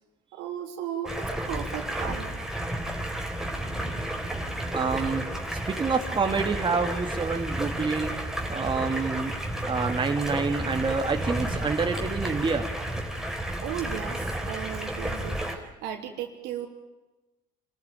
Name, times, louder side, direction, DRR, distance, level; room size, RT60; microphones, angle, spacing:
voice 1, 0.3-2.4 13.6-16.7, right 10 dB, 80° right, 4 dB, 3.5 m, -36 dB
Stream, 1.1-15.6, right 1 dB, 5° right, 3.9 m, -32 dB
voice 2, 4.7-5.2 5.5-8.1 8.5-9.3 9.7-12.7, right 4 dB, 30° right, 5 dB, 2.3 m, -27 dB
26.5 x 14.5 x 9.1 m, 1.1 s
supercardioid pair, 90°, 17 cm